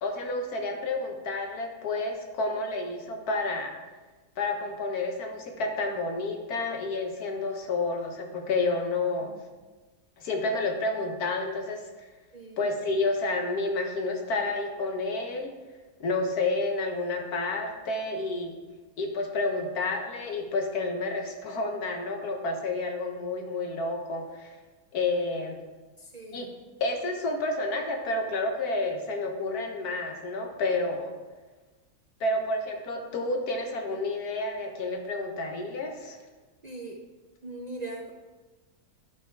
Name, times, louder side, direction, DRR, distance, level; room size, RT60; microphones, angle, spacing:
voice 1, 0.0-3.8 4.4-9.3 10.2-12.1 12.6-15.5 16.0-18.6 19.0-24.6 24.9-25.6 26.3-26.5 26.8-31.2 32.2-36.2, left 2 dB, 85° left, 3 dB, 1.6 m, -30 dB
voice 2, 12.3-12.7 26.0-26.6 36.6-37.0 37.4-38.1, right 2 dB, 45° right, 0 dB, 0.5 m, -40 dB
9.5 x 4.9 x 4.5 m, 1.2 s
omnidirectional pair, 1.6 m